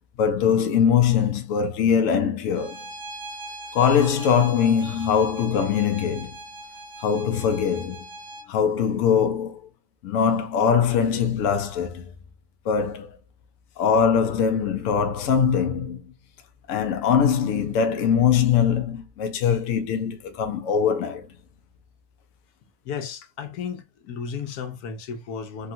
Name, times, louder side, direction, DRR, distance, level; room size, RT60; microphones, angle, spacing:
voice 1, 0.2-2.8 3.7-6.3 7.0-8.1 8.5-9.7 10.0-12.1 12.7-13.1 13.8-16.1 16.7-21.3, left 7 dB, 65° left, 0.9 m, -22 dB
Bowed string instrument, 2.5-8.5, right 1 dB, 20° right, 0.8 m, -40 dB
voice 2, 22.9-25.7, left 6 dB, 85° left, 1.2 m, -34 dB
3.4 x 2.4 x 2.6 m
omnidirectional pair, 1.6 m